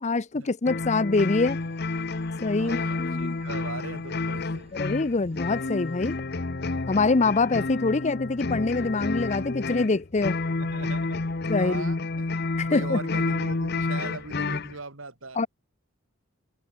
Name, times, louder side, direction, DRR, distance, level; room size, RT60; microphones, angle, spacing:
voice 1, 0.0-1.6 2.4-3.4 4.8-6.1 6.9-10.4 11.5-12.0 12.6-13.0 15.4-15.5, left 3 dB, 35° left, 0.6 m, -25 dB
sound 1, 0.7-14.8, left 3 dB, 50° left, 0.9 m, -30 dB
sound 2, 1.1-6.2, right 2 dB, 30° right, 5.4 m, -57 dB
voice 2, 2.6-4.7 10.6-11.2 11.6-12.3 12.7-15.4, right 3 dB, 70° right, 3.4 m, -39 dB
open air
head